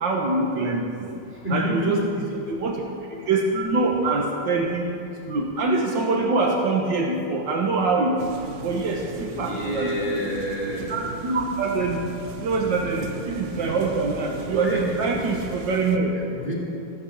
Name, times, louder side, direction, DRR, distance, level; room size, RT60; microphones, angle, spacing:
voice 1, 0.0-0.9 1.5-2.8 3.3-4.9 5.3-8.3 8.6-10.3 10.9-12.0 12.4-16.1, right 3 dB, 75° right, 1 dB, 1.7 m, -24 dB
voice 2, 1.4-2.1 9.3-10.9 14.6-14.9 16.1-16.6, equal, 5° right, -5 dB, 3.5 m, -28 dB
sound 1, 8.2-16.0, right 4 dB, 55° right, 0.9 m, -37 dB
14.0 x 7.9 x 7.2 m, 2.7 s
omnidirectional pair, 2.0 m